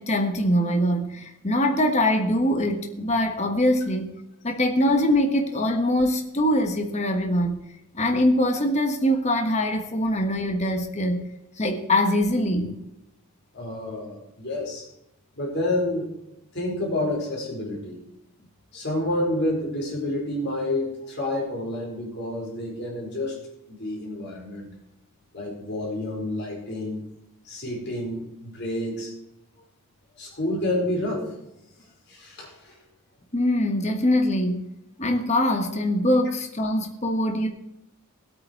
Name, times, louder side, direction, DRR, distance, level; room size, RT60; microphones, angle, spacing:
voice 1, 0.0-7.6 7.9-11.3 11.6-12.8 33.3-34.7 35.0-37.5, left 1 dB, 30° left, 4 dB, 1.3 m, -23 dB
voice 2, 13.5-14.9 15.4-16.1 16.5-18.0 18.7-23.4 23.7-24.7 25.3-27.0 27.4-29.1 30.2-31.3 32.1-32.8, left 1 dB, 50° left, -1 dB, 4.6 m, -29 dB
18.5 x 8.8 x 4.6 m, 0.87 s
head